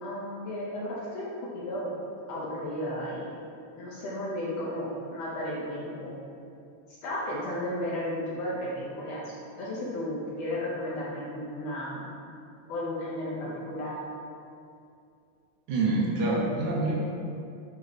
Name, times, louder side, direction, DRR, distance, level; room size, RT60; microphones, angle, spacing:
voice 1, 0.0-1.9 2.3-3.3 3.8-6.1 7.0-12.1 12.7-14.0, left 1 dB, 70° left, -6 dB, 1.7 m, -34 dB
voice 2, 15.7-17.0, right 2 dB, 75° right, -4 dB, 2.2 m, -26 dB
8.7 x 2.9 x 4.0 m, 2.5 s
omnidirectional pair, 3.6 m